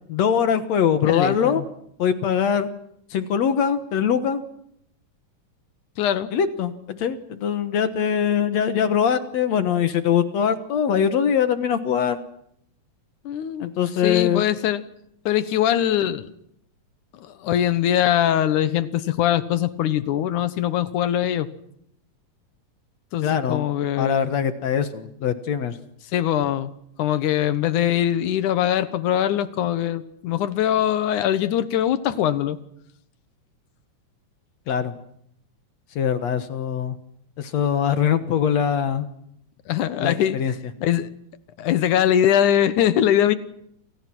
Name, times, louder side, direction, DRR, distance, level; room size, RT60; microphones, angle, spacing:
voice 1, 0.1-1.6 2.0-2.7 3.1-4.4 6.3-12.2 13.6-14.4 23.2-23.7 24.0-25.8 34.7-34.9 36.0-37.0 37.4-39.1 40.0-40.5, left 8 dB, 65° left, 10 dB, 2.4 m, -22 dB
voice 2, 1.0-1.7 6.0-6.3 13.2-13.7 14.0-14.8 15.3-16.3 17.2-21.5 23.1-24.3 26.1-26.7 27.0-32.6 39.7-40.4 40.8-41.1 41.6-43.4, left 11 dB, 80° left, 13 dB, 2.6 m, -22 dB
28.5 x 26.5 x 6.1 m, 0.74 s
omnidirectional pair, 3.5 m